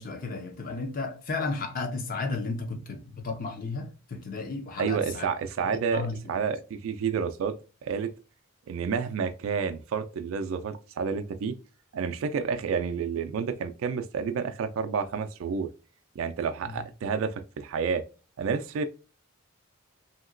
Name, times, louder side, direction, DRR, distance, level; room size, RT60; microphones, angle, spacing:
voice 1, 0.0-5.3 5.9-6.6 16.6-16.8, left 3 dB, 40° left, 0.5 m, -34 dB
voice 2, 4.8-6.0 6.3-7.5 7.8-8.1 8.7-11.6 11.9-15.7 16.2-18.0 18.4-18.8, right 6 dB, 70° right, 0.3 m, -29 dB
2.8 x 2.8 x 2.5 m
head